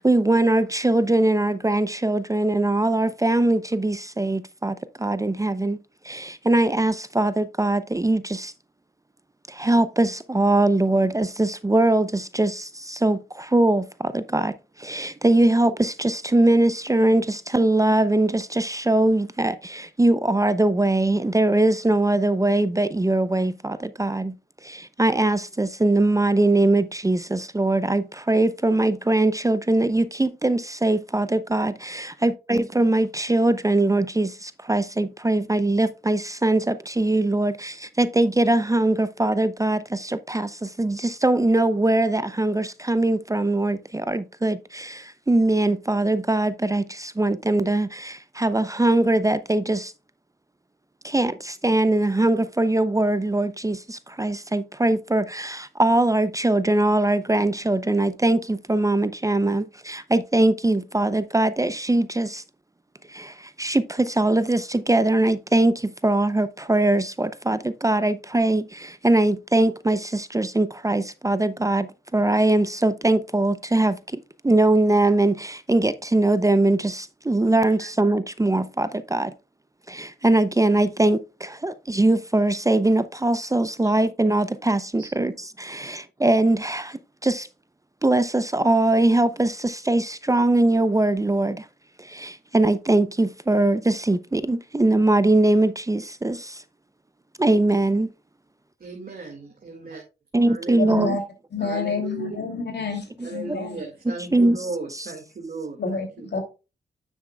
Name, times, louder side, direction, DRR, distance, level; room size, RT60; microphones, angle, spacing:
voice 1, 0.0-5.8 6.0-8.5 9.5-24.3 24.6-49.9 51.0-62.4 63.1-79.3 79.9-85.3 85.6-87.5 88.0-91.7 92.0-96.6 97.4-98.1 100.3-101.2 103.2-103.6 104.3-104.6 104.9-105.1, right 2 dB, 20° right, 0.6 m, -22 dB
voice 2, 98.8-100.0 100.5-101.1 101.6-102.4 103.2-106.4, right 3 dB, 55° right, 2.1 m, -36 dB
voice 3, 100.8-101.2 101.5-103.8 105.8-106.0 106.3-106.4, left 4 dB, 70° left, 2.9 m, -28 dB
9.7 x 7.3 x 2.3 m
cardioid pair, 70°, 18 cm